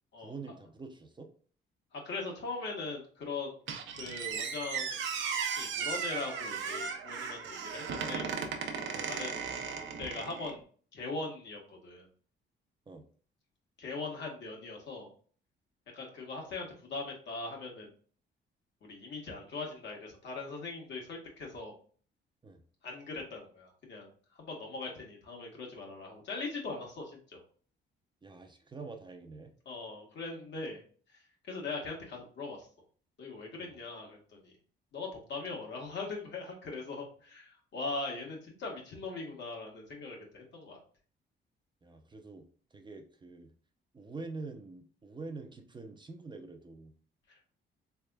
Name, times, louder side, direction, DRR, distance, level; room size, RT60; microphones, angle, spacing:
voice 1, 0.2-1.3 8.9-9.1 12.9-13.0 22.4-22.6 28.2-29.5 33.6-33.7 41.8-42.5 42.7-43.5 43.9-46.9, right 3 dB, 25° right, 4 dB, 0.5 m, -46 dB
voice 2, 1.9-3.5 4.0-5.0 5.6-8.3 9.0-9.3 9.8-10.6 10.9-12.1 13.8-15.1 15.9-17.9 18.8-21.7 22.8-24.1 24.4-27.4 29.6-30.8 31.1-31.2 31.5-32.7 33.2-34.5 34.9-40.8, left 3 dB, 65° left, 0 dB, 1.4 m, -40 dB
Squeak, 3.7-10.6, right 6 dB, 75° right, 0.7 m, -36 dB
3.5 x 3.4 x 2.2 m, 0.44 s
cardioid pair, 90°, 20 cm